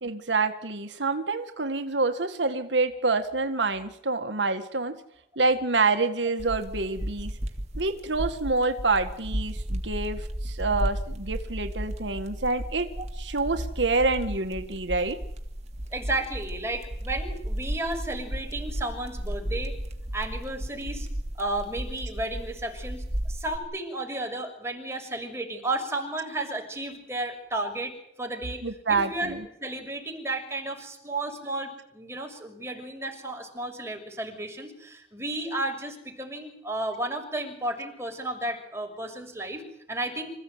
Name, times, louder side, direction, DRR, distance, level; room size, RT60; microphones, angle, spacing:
voice 1, 0.0-5.0 5.4-7.3 7.8-12.9 13.2-15.2 28.6-29.4, right 3 dB, 85° right, 7 dB, 1.9 m, -27 dB
sound 1, 6.4-23.6, equal, 40° right, 3.1 m, -34 dB
voice 2, 15.9-19.8 20.1-21.1 21.4-28.6 28.9-39.6 39.9-40.3, right 2 dB, 15° right, 3 dB, 6.3 m, -33 dB
27.0 x 16.0 x 9.5 m, 0.76 s
head